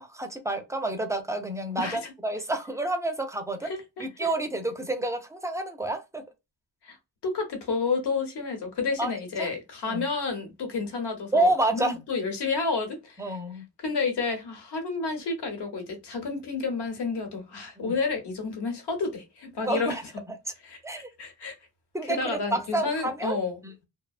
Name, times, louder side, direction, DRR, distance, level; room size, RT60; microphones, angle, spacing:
voice 1, 0.0-3.7 4.0-6.2 9.0-9.1 9.4-9.5 9.9-10.0 11.3-12.0 13.2-13.6 17.8-18.0 19.6-20.0 20.8-21.1 21.9-23.4 23.6-23.7, right 2 dB, 10° right, 0.3 m, -29 dB
voice 2, 1.8-2.1 3.6-4.3 6.8-7.0 7.2-13.4 13.8-20.0 20.6-21.6 22.0-23.6, left 4 dB, 70° left, 1.0 m, -30 dB
2.7 x 2.0 x 2.3 m
wide cardioid pair, 130°, 41 cm